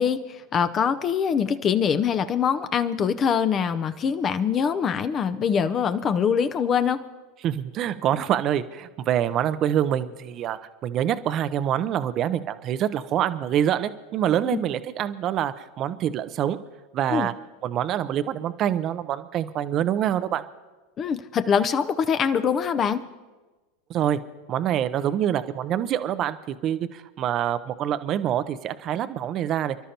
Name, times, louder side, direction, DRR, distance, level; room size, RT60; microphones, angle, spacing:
voice 1, 0.0-7.0 17.1-17.3 21.0-23.0, left 7 dB, 35° left, 11 dB, 0.7 m, -23 dB
voice 2, 7.4-16.6 16.9-17.3 17.6-20.4 23.9-24.2 24.5-29.8, right 10 dB, 40° right, 12 dB, 0.6 m, -26 dB
29.0 x 12.5 x 2.9 m, 1.2 s
hypercardioid pair, 85°, 0 cm